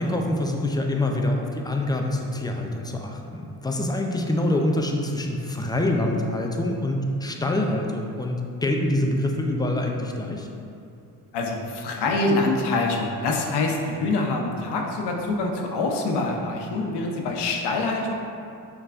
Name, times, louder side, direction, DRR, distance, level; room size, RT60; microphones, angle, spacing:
voice 1, 0.0-10.5, left 1 dB, 10° left, 2 dB, 0.4 m, -25 dB
voice 2, 11.3-18.1, left 2 dB, 65° left, 1 dB, 0.8 m, -25 dB
5.7 x 3.1 x 2.5 m, 2.5 s
supercardioid pair, 55°, 44 cm